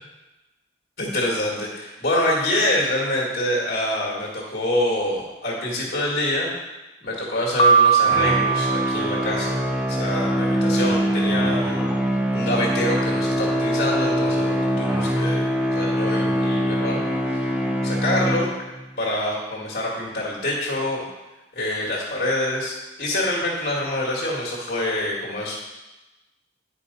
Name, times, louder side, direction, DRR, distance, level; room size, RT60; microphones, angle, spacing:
voice 1, 1.0-6.5 7.0-9.6 9.9-11.9 12.3-17.5 17.8-18.5 19.0-21.1 21.6-25.6, left 1 dB, 50° left, -6 dB, 2.1 m, -26 dB
Piano, 7.6-9.7, right 5 dB, 30° left, 0.5 m, -20 dB
sound 1, 8.0-18.8, equal, 5° right, 0.7 m, -23 dB
9.8 x 5.1 x 5.4 m, 1.1 s
head